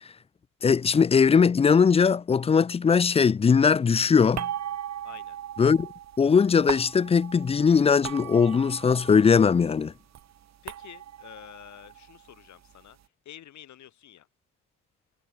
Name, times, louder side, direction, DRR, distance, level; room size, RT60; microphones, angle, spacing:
voice 1, 0.6-4.5 5.6-5.9 6.2-9.9, left 6 dB, 20° left, 0.4 m, -20 dB
sound 1, 4.3-9.6 9.9-12.8, right 11 dB, 60° right, 1.6 m, -38 dB
voice 2, 5.0-5.4 10.6-14.3, left 11 dB, 70° left, 2.8 m, -48 dB
cardioid pair, 90°, 30 cm